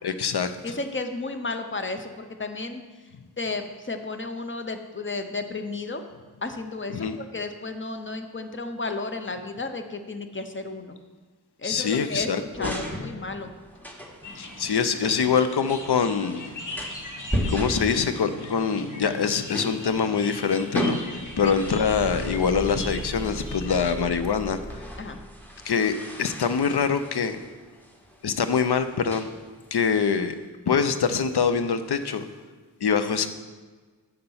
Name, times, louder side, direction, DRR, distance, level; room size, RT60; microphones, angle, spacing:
voice 1, 0.0-0.5 6.9-7.2 11.6-12.7 14.4-16.5 17.5-24.9 25.6-25.9 26.2-27.4 28.2-29.3 29.7-30.4 30.7-32.3 32.8-33.3, left 6 dB, 75° left, 10 dB, 0.6 m, -24 dB
voice 2, 0.6-2.8 3.4-6.0 6.4-11.0 11.6-13.5 21.4-21.6 25.0-25.2, left 3 dB, 30° left, 7 dB, 0.8 m, -33 dB
sound 1, 12.1-30.4, equal, 5° left, 1.1 m, -37 dB
sound 2, 14.2-23.9, left 2 dB, 50° left, 1.3 m, -40 dB
Car / Engine, 21.1-25.6, equal, 10° right, 2.2 m, -37 dB
6.8 x 6.8 x 5.6 m, 1.4 s
wide cardioid pair, 55°, 39 cm